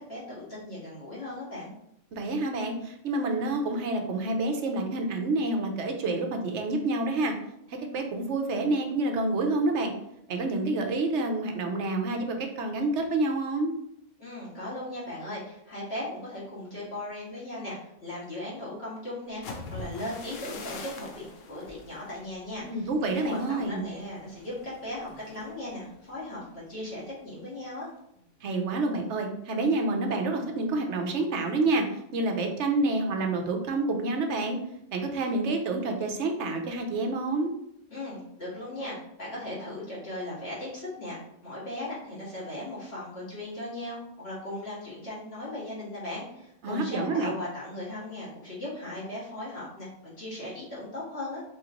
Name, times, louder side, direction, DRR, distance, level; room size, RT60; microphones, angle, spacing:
voice 1, 0.1-1.7 14.2-19.4 19.7-27.9 37.9-51.4, left 1 dB, 55° left, -7 dB, 2.1 m, -38 dB
voice 2, 2.1-7.3 7.7-9.9 10.3-13.7 22.6-23.9 28.4-31.8 32.1-34.6 34.9-37.5 46.6-47.3, right 2 dB, 70° right, 3 dB, 1.0 m, -28 dB
sound 1, 19.3-27.1 27.5-27.8 28.2-28.6, left 4 dB, 90° left, 1.1 m, -45 dB
4.4 x 3.1 x 3.8 m, 0.78 s
omnidirectional pair, 1.3 m